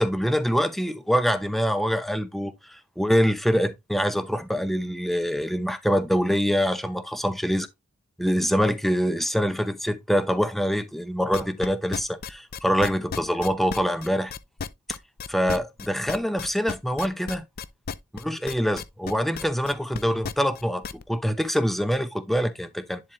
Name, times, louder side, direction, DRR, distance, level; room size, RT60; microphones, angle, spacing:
voice 1, 0.0-7.7 8.2-14.3 15.3-17.4 18.1-23.0, equal, ahead, 0.7 m, -25 dB
sound 1, 11.3-21.0, left 6 dB, 45° left, 0.5 m, -34 dB
10.5 x 4.1 x 3.1 m
head